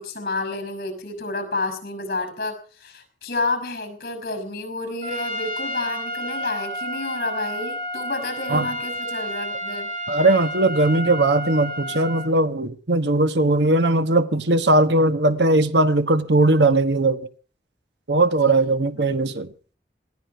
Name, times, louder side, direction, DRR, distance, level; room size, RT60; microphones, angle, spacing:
voice 1, 0.0-9.9 18.9-19.3, left 2 dB, 55° left, 5.6 m, -30 dB
Trumpet, 5.0-12.3, equal, 45° right, 4.0 m, -31 dB
voice 2, 10.1-17.3 18.1-19.5, right 2 dB, 80° right, 1.2 m, -19 dB
20.0 x 15.0 x 4.5 m
head